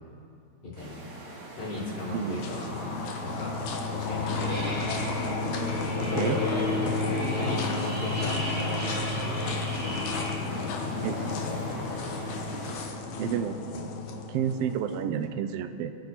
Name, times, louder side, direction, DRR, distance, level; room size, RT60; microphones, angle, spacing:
voice 1, 0.6-1.0 1.6-2.9 3.2-4.7 6.0-6.9 7.3-8.7, left 1 dB, 55° left, -9 dB, 5.7 m, -36 dB
sound 1, 0.8-12.9, right 1 dB, 45° right, 3.4 m, -44 dB
sound 2, 1.7-15.0, left 3 dB, 80° left, 2.6 m, -32 dB
sound 3, 4.3-10.3, left 1 dB, 10° left, 3.2 m, -36 dB
voice 2, 13.2-13.6 14.3-15.9, right 8 dB, 75° right, 9 dB, 1.4 m, -30 dB
27.5 x 9.5 x 4.4 m, 2.5 s
omnidirectional pair, 3.4 m